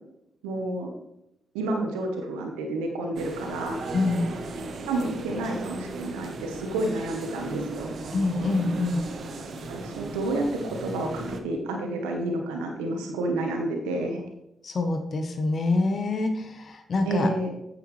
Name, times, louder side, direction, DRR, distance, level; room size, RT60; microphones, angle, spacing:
voice 1, 0.4-0.9 1.5-3.8 4.9-7.9 9.7-14.2 17.1-17.5, right 2 dB, 90° right, 3 dB, 1.1 m, -30 dB
sound 1, 3.2-11.4, right 2 dB, 65° right, 1.0 m, -36 dB
voice 2, 3.9-4.2 8.1-9.0 14.6-17.3, left 3 dB, 55° left, 6 dB, 1.1 m, -26 dB
9.1 x 7.0 x 3.3 m, 0.84 s
hypercardioid pair, 40°, 0 cm